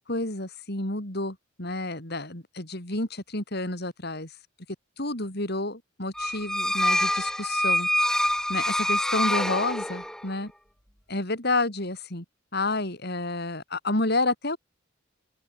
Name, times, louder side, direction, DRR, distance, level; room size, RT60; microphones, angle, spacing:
voice 1, 0.1-4.3 5.0-7.9 8.5-10.5 11.1-12.2 12.5-14.6, left 2 dB, 55° left, 5.5 m, -30 dB
sound 1, 6.2-10.3, left 1 dB, 5° left, 2.1 m, -26 dB
open air
head